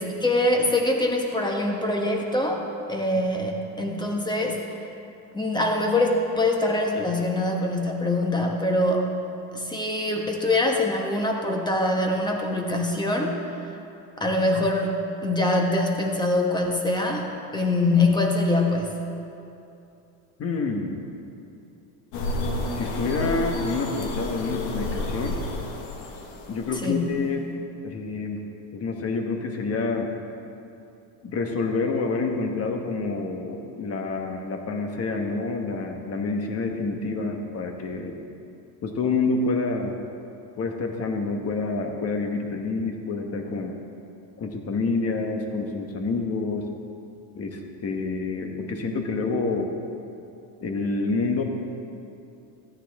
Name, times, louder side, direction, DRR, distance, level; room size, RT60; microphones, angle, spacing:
voice 1, 0.0-2.6 2.9-4.6 5.3-9.1 9.5-13.5 14.2-14.9 15.2-18.9 26.8-27.0, left 2 dB, 10° left, 1 dB, 1.2 m, -24 dB
voice 2, 20.4-21.0 22.8-25.4 26.5-27.5 27.8-28.4 28.7-30.1 31.2-38.2 38.8-40.0 40.6-43.7 44.4-46.7 47.3-49.7 50.6-51.4, left 3 dB, 35° left, 4 dB, 1.2 m, -28 dB
sound 1, 22.1-27.2, left 2 dB, 80° left, 1.5 m, -31 dB
14.0 x 9.3 x 3.5 m, 2.7 s
cardioid pair, 120°, 43 cm